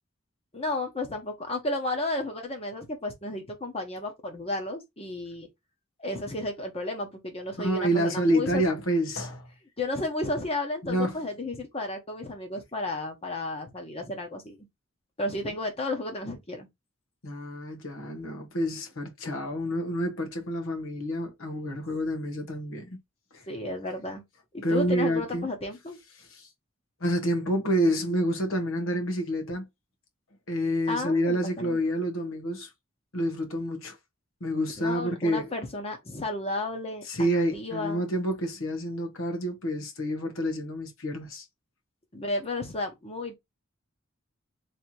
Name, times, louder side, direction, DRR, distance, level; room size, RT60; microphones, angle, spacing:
voice 1, 0.5-5.5 6.0-8.6 9.8-14.6 15.2-16.7 23.5-24.2 24.5-26.0 30.9-31.8 34.8-38.0 42.1-43.3, left 2 dB, 30° left, 1.0 m, -33 dB
voice 2, 7.6-9.5 10.8-11.2 17.2-23.0 23.3-23.4 24.6-25.5 26.3-26.5 27.0-29.6 30.5-32.7 33.1-34.0 34.4-35.5 37.1-41.4, equal, 80° left, 1.3 m, -28 dB
3.4 x 2.8 x 4.3 m
head